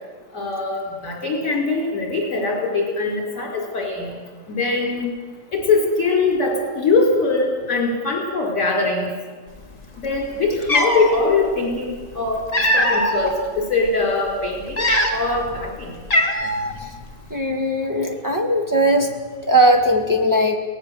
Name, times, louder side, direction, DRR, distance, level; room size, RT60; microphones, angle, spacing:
voice 1, 0.3-4.1 4.5-5.1 5.5-9.1 10.0-11.9 12.1-15.9, left 3 dB, 50° left, 1 dB, 5.1 m, -22 dB
Cat, 10.1-10.2 10.6-11.2 12.1-13.3 13.9-14.0 14.6-15.4 15.7-15.8 16.1-16.7, left 1 dB, 20° left, 2.3 m, -20 dB
voice 2, 17.3-19.1 19.4-20.6, right 1 dB, 10° right, 3 dB, 2.3 m, -18 dB
23.0 x 18.0 x 7.8 m, 1.4 s
omnidirectional pair, 1.8 m